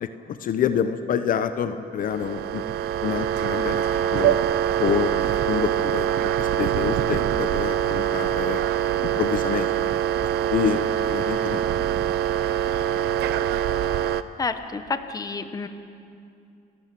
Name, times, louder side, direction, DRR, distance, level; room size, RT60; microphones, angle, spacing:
voice 1, 0.4-2.6 3.0-3.8 4.1-4.4 4.8-5.2 5.5-6.1 6.4-8.6 9.2-9.7 10.5-10.8 11.1-11.6, left 8 dB, 55° left, 10 dB, 1.0 m, -27 dB
sound 1, 2.0-14.2, right 10 dB, 75° right, 0.7 m, -24 dB
voice 2, 14.4-15.7, left 4 dB, 20° left, 9 dB, 1.2 m, -29 dB
29.5 x 13.0 x 7.6 m, 2.5 s
cardioid pair, 110°, 17 cm